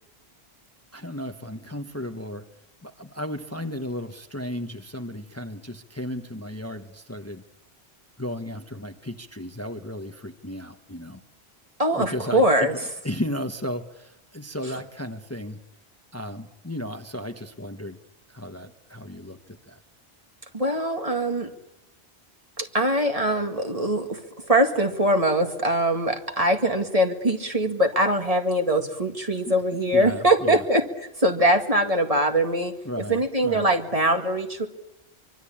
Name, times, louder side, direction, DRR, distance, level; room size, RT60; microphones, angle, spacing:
voice 1, 0.9-2.5 2.8-7.4 8.2-11.2 11.9-12.5 13.0-15.6 16.1-18.0 18.3-19.8 29.9-30.6 32.8-33.7, left 1 dB, 15° left, 6 dB, 1.1 m, -34 dB
voice 2, 11.8-12.7 20.5-21.5 22.6-30.8 31.2-32.7 33.1-34.7, right 1 dB, 35° right, 4 dB, 2.1 m, -22 dB
24.5 x 24.0 x 8.7 m, 0.91 s
omnidirectional pair, 1.1 m